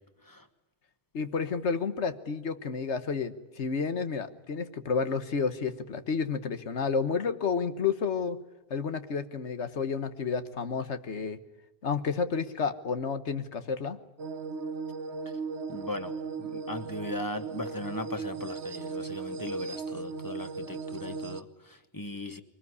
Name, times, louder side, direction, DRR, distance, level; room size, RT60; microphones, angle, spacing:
voice 1, 1.1-8.4 8.7-11.4 11.8-14.0, left 5 dB, 90° left, 10 dB, 1.6 m, -30 dB
sound 1, 14.2-21.4, right 4 dB, 75° right, 1.3 m, -37 dB
voice 2, 15.7-16.1 16.4-22.4, left 2 dB, 20° left, 8 dB, 1.4 m, -38 dB
23.0 x 20.0 x 9.7 m, 0.97 s
omnidirectional pair, 1.1 m